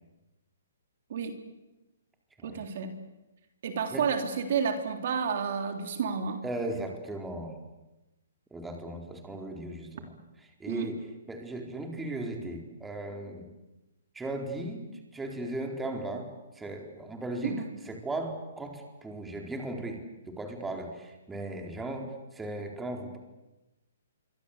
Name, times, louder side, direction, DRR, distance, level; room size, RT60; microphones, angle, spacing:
voice 1, 2.4-2.9 3.6-6.4 10.7-10.9 17.4-17.7, right 6 dB, 55° right, 6 dB, 3.5 m, -30 dB
voice 2, 6.4-7.5 8.5-10.1 10.6-13.5 14.1-14.8 15.1-16.3 16.6-23.2, right 2 dB, 10° right, 3 dB, 4.3 m, -37 dB
27.0 x 24.5 x 8.3 m, 1.0 s
hypercardioid pair, 145°, 0 cm